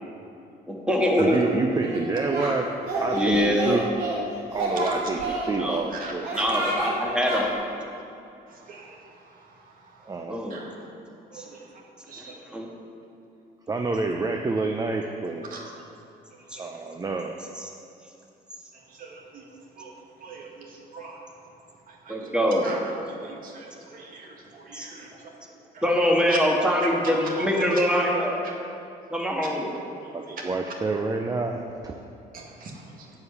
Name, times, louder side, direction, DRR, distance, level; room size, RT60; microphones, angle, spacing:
voice 1, 0.7-1.4 3.1-3.8 5.3-5.8 6.3-7.5 10.3-10.6 11.3-11.4 12.2-12.7 16.5-16.6 17.6-17.7 22.1-22.7 24.7-24.9 25.8-28.4 29.1-29.7, equal, 5° right, -2 dB, 1.7 m, -24 dB
voice 2, 1.2-2.7 3.0-3.9 4.5-6.3 10.1-10.4 13.7-15.5 16.6-17.4 30.1-31.9, right 3 dB, 20° right, 3 dB, 0.6 m, -28 dB
Singing, 1.8-2.5 2.8-4.2 4.5-5.8 6.2-6.9 7.2-7.4, right 2 dB, 85° right, 2.6 m, -29 dB
voice 3, 6.0-6.5 8.7-8.9 10.5-10.7 11.3-11.6 12.1-12.3 15.5-15.7 19.0-19.4 19.8-19.9 20.2-20.5 20.9-21.2 22.1-22.2 22.6-22.8 23.2-24.3 24.6-25.1 25.7-25.8 27.4-27.5 27.7-27.8 32.3-32.7, right 4 dB, 55° right, -1 dB, 1.9 m, -41 dB
10.5 x 5.0 x 8.1 m, 2.7 s
cardioid pair, 110°, 17 cm